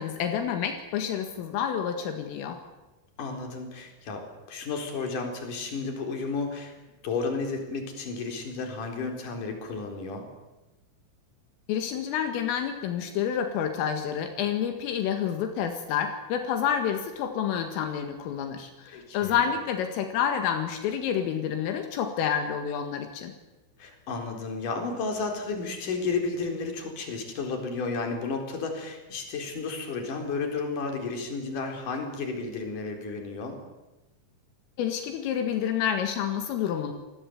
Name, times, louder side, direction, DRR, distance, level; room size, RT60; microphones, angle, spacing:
voice 1, 0.0-2.6 11.7-23.3 34.8-36.9, left 8 dB, 80° left, 6 dB, 4.4 m, -29 dB
voice 2, 3.2-6.7 7.0-10.3 18.9-19.4 23.8-33.6, left 4 dB, 40° left, 3 dB, 5.4 m, -32 dB
28.5 x 20.0 x 8.2 m, 1.0 s
omnidirectional pair, 5.9 m